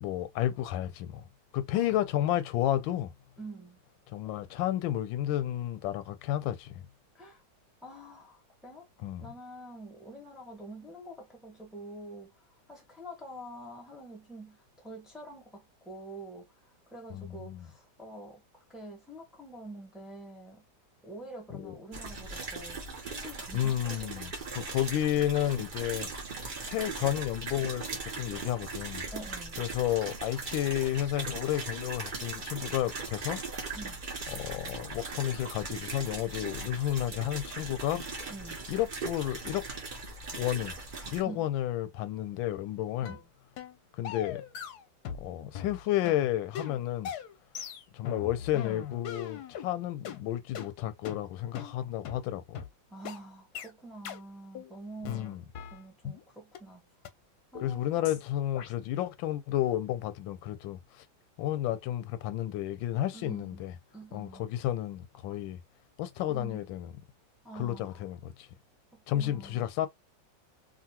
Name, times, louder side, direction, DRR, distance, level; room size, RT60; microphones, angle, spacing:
voice 1, 0.0-1.2 1.5-3.1 4.1-6.7 9.0-9.2 17.1-17.7 21.5-21.7 23.5-26.1 26.6-29.1 29.6-33.4 34.3-38.0 38.7-39.7 40.3-40.8 41.1-43.1 44.0-44.4 45.2-47.1 47.9-52.6 55.0-55.4 57.6-60.8 61.4-63.7 64.1-65.6 66.0-66.9 67.6-68.5 69.1-69.9, left 12 dB, 90° left, 1.3 m, -31 dB
voice 2, 3.4-3.8 7.1-7.4 7.8-8.9 9.2-16.5 16.9-20.7 21.0-24.3 29.1-29.6 33.7-34.0 38.3-38.6 41.2-41.5 43.0-43.3 51.5-51.8 52.9-55.4 55.7-56.8 57.5-58.1 63.1-63.6 63.9-64.5 66.3-66.6 67.4-68.0 68.9-69.7, right 1 dB, ahead, 0.4 m, -46 dB
sound 1, 21.9-41.2, right 3 dB, 75° right, 0.4 m, -39 dB
sound 2, 43.0-43.2 43.6-43.8 44.0-45.3 45.5-49.7 50.0-50.2 50.5-50.7 51.0-51.2 51.5-51.7 52.0-52.2 52.5-52.7 53.0-53.2 53.5-53.7 54.0-54.2 54.5-54.7 55.0-56.2 56.5-56.6 57.0-57.1 57.5-57.7 58.0-58.2 58.5-58.7, left 8 dB, 70° left, 1.0 m, -40 dB
2.8 x 2.6 x 2.8 m
omnidirectional pair, 2.0 m